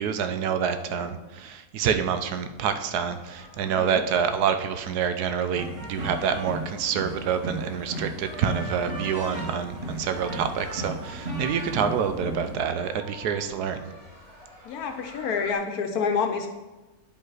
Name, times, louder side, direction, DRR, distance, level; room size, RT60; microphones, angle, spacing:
voice 1, 0.0-13.8, right 7 dB, 90° right, 9 dB, 1.2 m, -27 dB
sound 1, 2.8-15.6, equal, 70° right, 3.5 m, -50 dB
sound 2, 5.5-12.6, right 1 dB, 45° right, 1.5 m, -35 dB
voice 2, 14.6-16.5, left 5 dB, 75° left, 5 dB, 1.2 m, -28 dB
9.7 x 5.2 x 4.0 m, 1.1 s
omnidirectional pair, 1.6 m